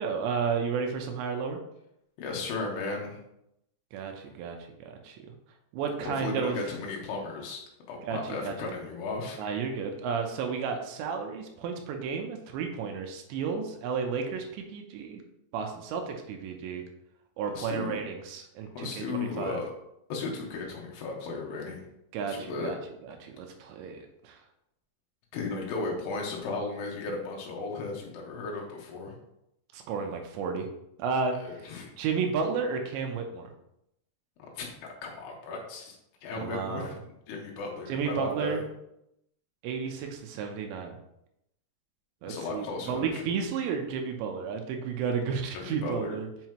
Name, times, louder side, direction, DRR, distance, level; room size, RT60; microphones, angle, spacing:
voice 1, 0.0-1.6 3.9-5.2 5.7-6.6 8.0-8.7 9.4-15.2 15.5-16.8 17.4-19.6 22.1-22.8 23.0-24.4 29.7-30.7 31.0-31.7 32.0-33.5 36.3-37.0 37.9-38.6 39.6-41.0 42.2-46.3, right 6 dB, 80° right, 3 dB, 3.0 m, -32 dB
voice 2, 2.2-3.2 6.0-7.6 7.9-9.4 17.5-18.0 18.7-19.7 20.1-21.8 22.3-22.7 25.3-29.1 31.4-31.9 34.5-34.7 35.0-36.0 36.2-36.9 37.3-38.6 42.2-43.3 45.5-46.2, left 3 dB, 75° left, 0 dB, 3.1 m, -35 dB
7.6 x 5.6 x 3.0 m, 0.81 s
omnidirectional pair, 5.2 m